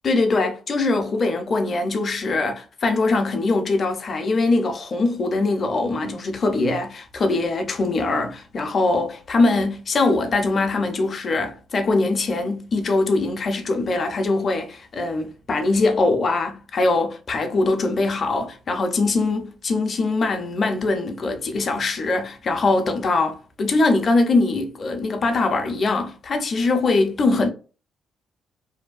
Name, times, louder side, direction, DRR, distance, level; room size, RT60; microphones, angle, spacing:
voice 1, 0.0-27.5, left 3 dB, 45° left, 0.6 m, -22 dB
2.7 x 2.2 x 2.4 m
cardioid pair, 90°, 0 cm